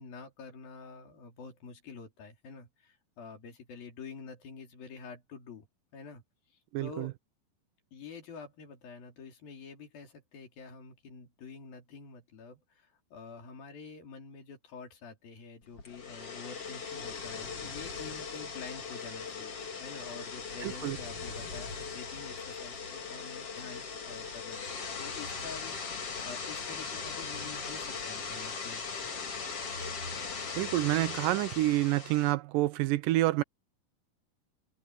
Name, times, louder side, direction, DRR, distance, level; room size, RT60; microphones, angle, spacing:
voice 1, 0.0-5.7 5.9-6.2 6.5-7.2 7.9-29.0, left 5 dB, 85° left, 5.4 m, -48 dB
voice 2, 6.7-7.1 20.6-21.0 30.6-33.4, right 16 dB, 80° right, 2.1 m, -28 dB
sound 1, 15.8-32.3, left 5 dB, 45° left, 3.7 m, -39 dB
open air
omnidirectional pair, 4.0 m